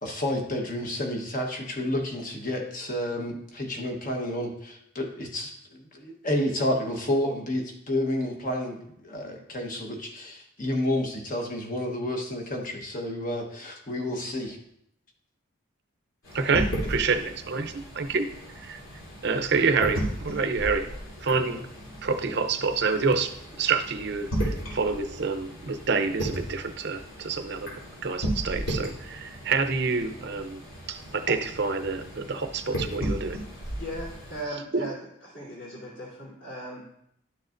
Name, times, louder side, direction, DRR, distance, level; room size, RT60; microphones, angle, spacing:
voice 1, 0.0-14.6, left 1 dB, 40° left, 2 dB, 1.2 m, -30 dB
sound 1, 16.2-34.4, right 1 dB, 80° left, 3.3 m, -35 dB
voice 2, 16.3-18.3 18.6-18.8 19.2-20.9 21.2-21.7 22.0-33.4 34.7-34.9, right 4 dB, 55° right, 7 dB, 0.6 m, -27 dB
voice 3, 33.8-34.9 35.3-36.8, right 1 dB, 55° left, -11 dB, 3.2 m, -38 dB
11.5 x 6.4 x 2.6 m, 0.75 s
head